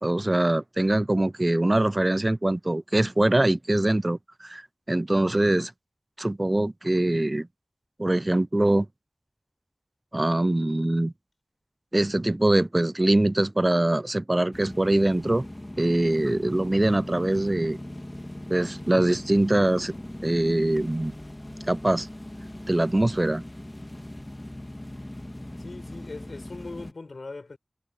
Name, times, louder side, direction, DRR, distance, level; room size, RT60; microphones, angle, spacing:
voice 1, 0.0-4.6 4.9-5.7 6.2-7.5 8.0-8.9 10.1-11.1 11.9-15.5 15.8-17.8 18.5-19.9 20.2-21.1 21.7-22.1 22.7-23.4, right 1 dB, 35° right, 0.4 m, -23 dB
sound 1, 14.5-26.9, left 1 dB, 25° left, 1.5 m, -39 dB
voice 2, 25.6-27.6, left 3 dB, 90° left, 5.8 m, -40 dB
wide cardioid pair, 55°, 0 cm